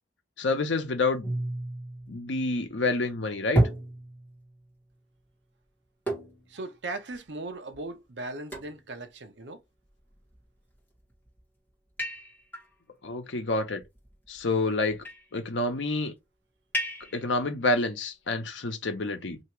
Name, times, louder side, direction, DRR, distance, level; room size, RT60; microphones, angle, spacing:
voice 1, 0.4-1.3 2.1-3.6 13.0-13.8 14.3-15.0 15.3-16.1 17.1-19.4, left 2 dB, 85° left, 0.8 m, -28 dB
sound 1, 1.2-2.7 3.6-4.5 6.1-6.6 7.1-7.2 7.7-7.8 8.5-8.9 10.0-10.5 11.1-11.4 12.0-12.7 13.8-14.4 14.9-15.4 16.7-17.3, right 1 dB, 10° left, 1.5 m, -31 dB
voice 2, 6.5-9.6, right 2 dB, 70° right, 0.8 m, -38 dB
2.9 x 2.9 x 4.4 m
head